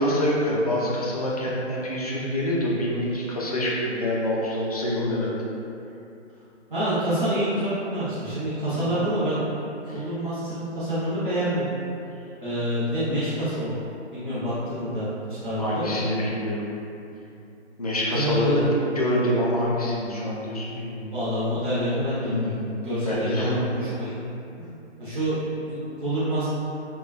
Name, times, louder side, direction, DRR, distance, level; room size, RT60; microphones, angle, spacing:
voice 1, 0.0-5.3 8.7-8.8 9.9-10.0 14.8-14.9 15.6-16.7 17.8-21.1 22.2-23.7 24.6-24.7, equal, 35° left, -5 dB, 0.4 m, -26 dB
voice 2, 6.7-9.4 9.9-11.6 12.4-13.8 14.1-16.0 18.1-18.7 21.1-24.1 25.0-26.5, equal, 45° right, -12 dB, 0.9 m, -27 dB
3.2 x 2.2 x 2.3 m, 2.8 s
figure-of-eight pair, 140°, 35 cm